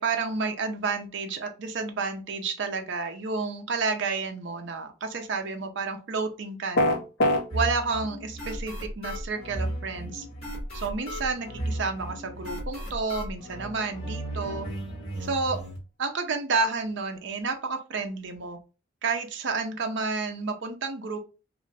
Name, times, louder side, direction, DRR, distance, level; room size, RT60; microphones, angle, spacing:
voice 1, 0.0-7.0 7.5-10.3 10.7-14.7 15.2-15.6 16.0-18.6 19.0-21.2, right 4 dB, 55° right, 5 dB, 0.5 m, -30 dB
sound 1, 6.8-7.4, left 1 dB, 55° left, 0.5 m, -21 dB
sound 2, 7.5-15.8, right 1 dB, 30° left, 1.4 m, -35 dB
2.4 x 2.4 x 3.2 m, 0.32 s
head